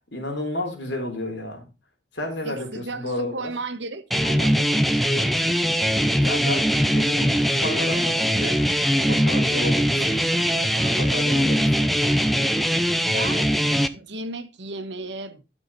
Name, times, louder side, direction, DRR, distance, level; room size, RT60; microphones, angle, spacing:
voice 1, 0.1-1.7 2.1-3.5 6.2-8.6 9.0-10.2 10.8-11.9, left 1 dB, 75° left, 3.6 m, -31 dB
voice 2, 2.4-5.3 10.6-11.2 13.0-13.6 13.9-15.4, right 2 dB, 75° right, 1.5 m, -35 dB
sound 1, 4.1-13.9, equal, ahead, 0.6 m, -21 dB
12.0 x 6.2 x 4.1 m
head